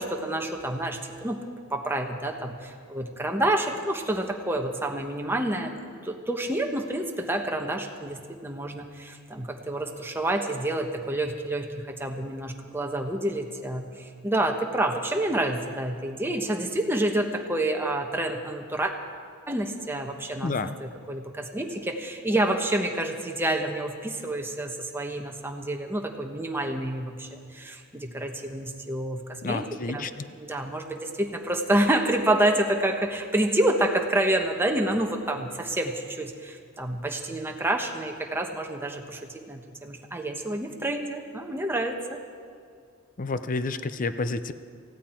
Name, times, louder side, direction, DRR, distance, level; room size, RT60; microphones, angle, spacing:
voice 1, 0.0-1.4 1.7-18.9 19.5-20.5 20.8-29.6 29.9-30.1 30.3-42.2, right 1 dB, 10° right, 3 dB, 1.2 m, -28 dB
voice 2, 20.4-20.8 29.4-30.1 43.2-44.5, left 3 dB, 40° left, 12 dB, 0.6 m, -29 dB
18.5 x 16.0 x 4.5 m, 2.2 s
head